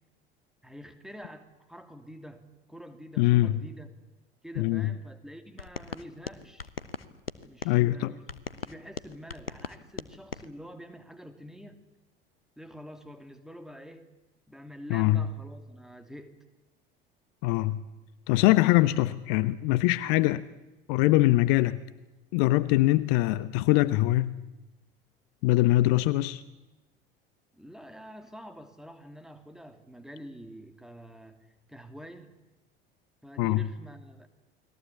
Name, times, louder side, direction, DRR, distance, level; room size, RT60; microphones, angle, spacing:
voice 1, 0.6-3.9 4.4-6.7 7.4-8.2 8.5-11.8 12.6-14.0 14.5-16.3 27.5-32.3 33.2-34.3, equal, ahead, 2.9 m, -47 dB
voice 2, 3.2-3.5 4.6-4.9 7.6-8.1 14.9-15.3 17.4-17.8 18.3-20.4 20.9-21.8 22.3-24.4 25.4-26.4 33.4-33.7, left 17 dB, 50° left, 0.9 m, -23 dB
sound 1, 5.6-7.8 8.3-10.5, left 5 dB, 85° left, 1.0 m, -40 dB
29.5 x 21.0 x 8.4 m
figure-of-eight pair, 70°, 29 cm